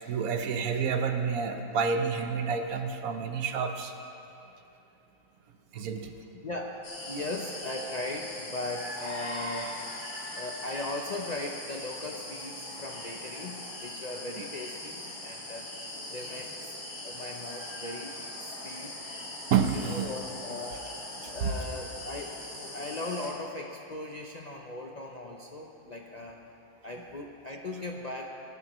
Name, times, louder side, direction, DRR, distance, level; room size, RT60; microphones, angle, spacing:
voice 1, 0.1-3.9 5.7-6.2 19.5-20.1 21.4-21.5, right 6 dB, 75° right, 6 dB, 1.2 m, -29 dB
voice 2, 6.4-9.8 10.3-15.8 16.1-16.8 17.0-19.0 19.7-20.9 21.3-22.4 22.7-26.5 26.8-28.4, left 2 dB, 45° left, 0 dB, 0.5 m, -38 dB
sound 1, 6.8-23.3, left 1 dB, 80° left, 2.4 m, -40 dB
20.5 x 11.0 x 3.0 m, 2.9 s
omnidirectional pair, 1.5 m